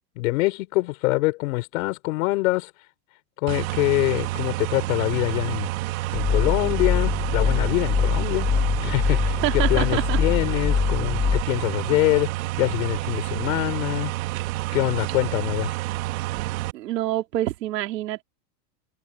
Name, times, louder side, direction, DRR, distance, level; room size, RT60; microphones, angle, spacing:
voice 1, 0.2-2.7 3.4-5.7 6.1-8.5 8.8-12.3 12.6-14.1 14.7-15.8, left 22 dB, 55° left, 6.1 m, -24 dB
sound 1, 3.5-16.7, right 18 dB, 55° right, 2.6 m, -29 dB
sound 2, 6.1-11.4, left 6 dB, 15° left, 1.6 m, -24 dB
voice 2, 9.4-10.2 16.7-18.2, right 14 dB, 90° right, 3.0 m, -26 dB
supercardioid pair, 160°, 48 cm